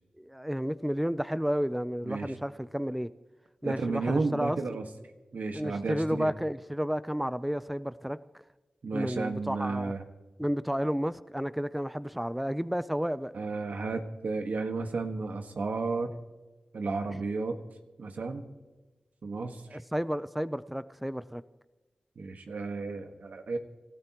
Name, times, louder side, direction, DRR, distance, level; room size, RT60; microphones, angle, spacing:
voice 1, 0.2-3.1 3.6-4.6 5.5-8.2 8.9-9.9 10.4-13.3 17.1-17.2 19.7-21.4, equal, 5° right, 0.5 m, -31 dB
voice 2, 3.6-4.8 5.3-6.3 8.8-10.0 13.3-16.1 16.7-17.6 18.0-18.5 19.2-19.8 22.2-23.6, right 3 dB, 80° right, 1.5 m, -33 dB
26.0 x 13.5 x 3.0 m
cardioid pair, 45°, 3 cm